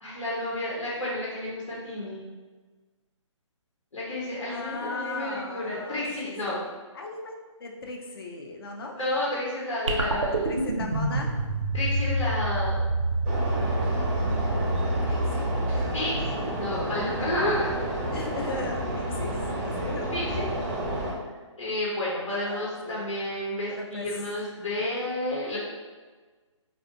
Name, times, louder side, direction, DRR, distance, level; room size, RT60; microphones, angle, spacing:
voice 1, 0.0-2.3 3.9-6.6 9.0-10.4 11.7-12.8 15.8-17.9 20.1-20.4 21.6-25.6, left 1 dB, 90° left, -6 dB, 0.7 m, -31 dB
voice 2, 4.5-6.6 6.9-9.0 10.0-11.4 15.0-15.9 18.1-20.1 22.3-23.1 23.7-24.1, left 3 dB, 50° left, 1 dB, 0.4 m, -38 dB
sound 1, 9.9-16.4, right 2 dB, 85° right, 0.5 m, -27 dB
sound 2, 13.3-21.1, right 1 dB, 25° right, 0.4 m, -30 dB
2.5 x 2.1 x 2.5 m, 1.4 s
figure-of-eight pair, 145°, 16 cm